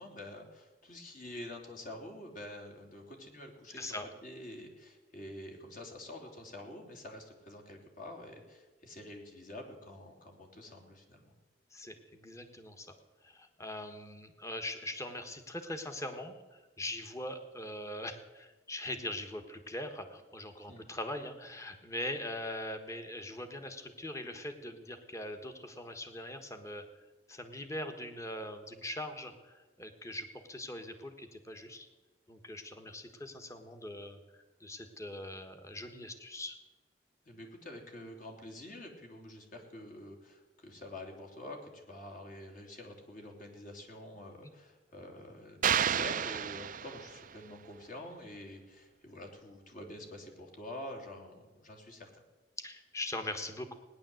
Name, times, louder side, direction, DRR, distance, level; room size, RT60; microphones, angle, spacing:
voice 1, 0.0-3.9 4.2-11.3 20.6-20.9 37.2-52.2, left 1 dB, 50° left, 2 dB, 3.1 m, -47 dB
voice 2, 3.7-4.1 11.7-12.9 13.2-26.8 27.3-31.9 32.3-36.6 52.6-53.8, left 1 dB, 15° left, 6 dB, 1.4 m, -41 dB
sound 1, 45.6-47.4, right 8 dB, 45° right, 0.5 m, -31 dB
18.0 x 10.5 x 7.8 m, 1.2 s
head